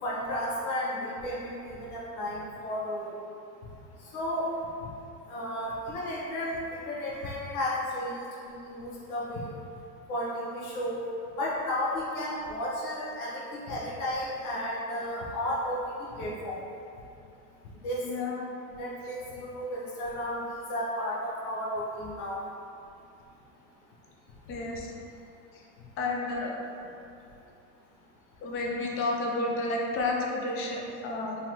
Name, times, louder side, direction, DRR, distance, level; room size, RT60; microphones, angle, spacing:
voice 1, 0.0-3.1 4.1-4.5 5.3-9.5 10.1-11.0 11.4-15.8 16.1-16.6 17.8-18.0 18.7-20.4 20.7-22.4, left 1 dB, 90° left, -6 dB, 1.0 m, -33 dB
voice 2, 18.0-18.4 24.5-24.9 25.5-25.6 26.0-26.5 28.4-31.4, left 2 dB, 35° left, -1 dB, 0.5 m, -31 dB
3.8 x 2.9 x 3.0 m, 2.6 s
supercardioid pair, 150°, 42 cm